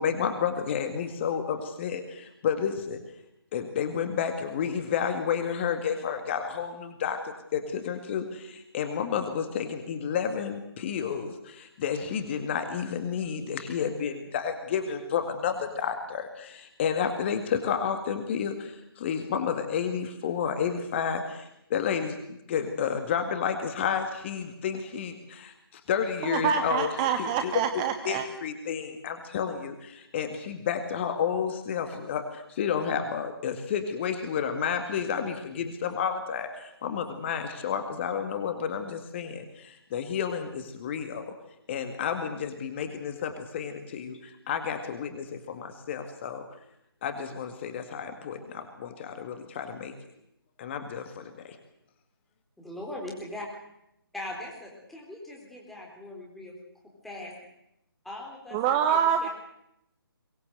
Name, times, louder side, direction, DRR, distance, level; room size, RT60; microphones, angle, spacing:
voice 1, 0.0-3.0 3.5-26.9 27.2-27.5 28.1-41.3 41.7-46.4 47.0-49.9 50.6-51.6, left 7 dB, 30° left, 7 dB, 2.0 m, -31 dB
voice 2, 26.2-28.3 58.5-59.3, right 8 dB, 20° right, 8 dB, 0.9 m, -26 dB
voice 3, 52.6-53.4 54.1-56.5 57.0-57.3 58.0-59.3, left 1 dB, ahead, -3 dB, 4.1 m, -40 dB
23.0 x 19.5 x 7.9 m, 0.81 s
figure-of-eight pair, 150°, 13 cm